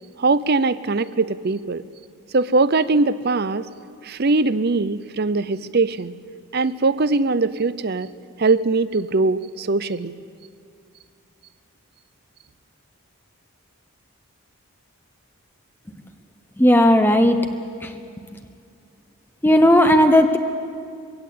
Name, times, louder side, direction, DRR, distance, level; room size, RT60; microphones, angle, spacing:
voice 1, 0.2-1.8 2.3-3.7 4.0-6.1 6.5-8.1 8.4-10.1, right 3 dB, 45° right, 16 dB, 0.6 m, -21 dB
voice 2, 16.6-17.5 17.8-17.9 19.4-20.4, left 1 dB, 10° left, 6 dB, 0.8 m, -15 dB
23.0 x 17.0 x 8.5 m, 2.4 s
head